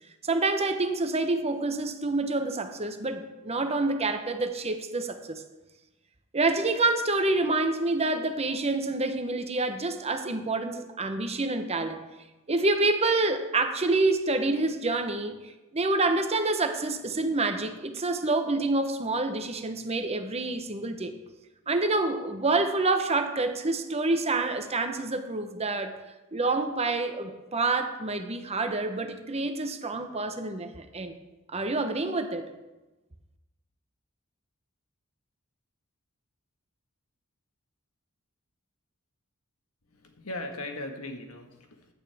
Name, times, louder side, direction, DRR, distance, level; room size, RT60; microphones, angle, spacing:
voice 1, 0.2-5.4 6.3-12.0 12.5-15.4 15.7-21.2 21.7-26.0 26.3-31.1 31.5-32.5, right 2 dB, 30° right, 7 dB, 1.0 m, -27 dB
voice 2, 39.9-41.9, left 2 dB, 80° left, 4 dB, 1.6 m, -39 dB
16.0 x 10.5 x 3.5 m, 1.1 s
head